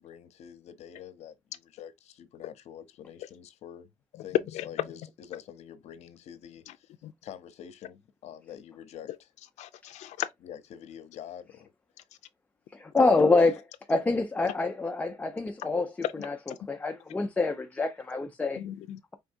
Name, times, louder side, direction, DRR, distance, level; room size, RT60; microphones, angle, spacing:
voice 1, 0.0-3.9 4.2-6.9 7.2-9.3 10.4-11.7, left 9 dB, 70° left, 0.8 m, -46 dB
voice 2, 4.5-4.9 7.0-7.1 9.6-10.3 16.0-16.6 18.6-19.0, left 12 dB, 90° left, 0.4 m, -35 dB
voice 3, 12.7-15.9 16.2-16.4 16.7-18.6, left 3 dB, 10° left, 0.4 m, -26 dB
4.5 x 3.5 x 2.6 m
cardioid pair, 180°, 12 cm